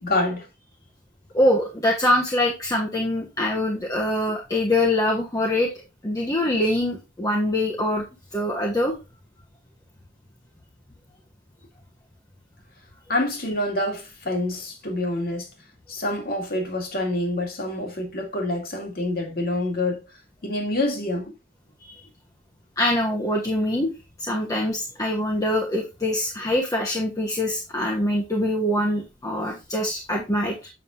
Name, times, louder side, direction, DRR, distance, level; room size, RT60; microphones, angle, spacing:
voice 1, 0.0-0.5 13.1-15.5 15.9-20.0 20.4-21.3, left 1 dB, 50° left, 2.2 m, -26 dB
voice 2, 1.3-5.7 6.0-8.0 8.3-8.9 22.8-23.9 24.2-30.7, left 1 dB, 20° left, 1.1 m, -24 dB
7.5 x 6.4 x 2.6 m
head